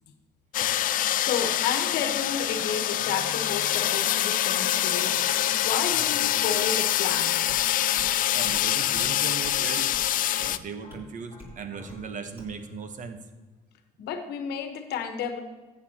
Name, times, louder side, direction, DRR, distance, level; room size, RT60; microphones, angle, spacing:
sound 1, 0.5-10.6, left 12 dB, 55° left, 0.4 m, -25 dB
voice 1, 1.1-7.4 14.0-15.4, left 7 dB, 75° left, 7 dB, 1.2 m, -32 dB
sound 2, 2.1-4.2 5.0-7.4 7.9-10.0 10.8-13.2, left 2 dB, 30° left, 2.6 m, -50 dB
sound 3, 7.1-7.2 7.5-7.6 8.0-8.1 8.5-8.7 8.9-9.1 9.4-9.6 9.9-10.1 10.4-10.5 10.9-11.0 11.4-11.6 11.9-12.0 12.4-12.6, equal, 15° right, 3.1 m, -46 dB
voice 2, 8.3-10.0 10.4-13.3, right 5 dB, 50° right, 8 dB, 1.1 m, -38 dB
14.0 x 8.4 x 2.9 m, 1.2 s
cardioid pair, 110°, 17 cm